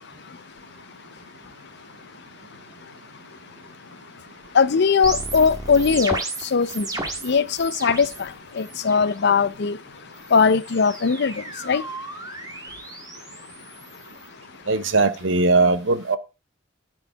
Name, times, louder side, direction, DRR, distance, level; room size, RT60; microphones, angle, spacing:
voice 1, 4.5-6.2 6.5-6.9 7.2-8.3 8.6-9.8 10.3-11.8, left 5 dB, 60° left, 0.6 m, -20 dB
sound 1, 5.0-8.3 8.6-9.1 10.1-14.3, right 2 dB, 20° right, 1.4 m, -34 dB
voice 2, 14.7-16.2, right 3 dB, 70° right, 0.8 m, -19 dB
12.0 x 4.7 x 4.5 m
head